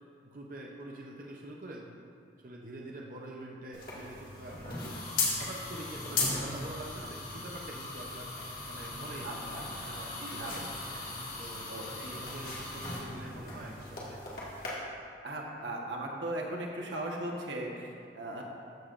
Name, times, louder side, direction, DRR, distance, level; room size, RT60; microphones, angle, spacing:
voice 1, 0.2-2.0 2.4-5.0 5.4-8.3 8.7-9.6 9.9-10.7 11.4-14.2, right 1 dB, 50° right, -2 dB, 0.7 m, -45 dB
sound 1, 3.7-14.7, left 3 dB, 50° left, 1.9 m, -37 dB
voice 2, 9.2-10.0 10.3-10.6 10.9-11.1 11.7-12.1 15.2-18.4, right 1 dB, 85° right, -1 dB, 1.2 m, -38 dB
14.0 x 7.0 x 2.5 m, 2.3 s
head